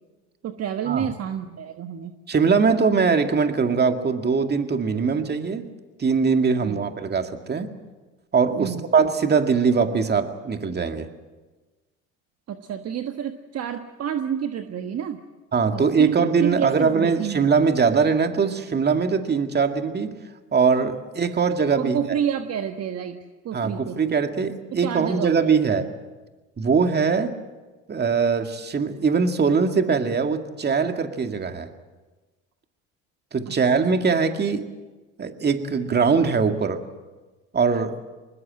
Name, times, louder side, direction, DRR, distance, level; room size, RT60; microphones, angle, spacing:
voice 1, 0.4-2.1 6.6-6.8 8.6-8.9 12.5-15.2 15.7-17.5 21.8-24.1 24.7-25.5 33.5-33.6, right 9 dB, 45° right, 7 dB, 1.4 m, -29 dB
voice 2, 2.3-5.6 6.0-7.7 8.3-11.1 15.5-20.1 20.5-22.0 23.5-25.9 26.6-27.3 27.9-31.7 33.3-34.7 35.2-36.8 37.5-38.0, right 5 dB, 25° right, 6 dB, 2.2 m, -21 dB
24.5 x 20.5 x 7.7 m, 1.3 s
hypercardioid pair, 75°, 36 cm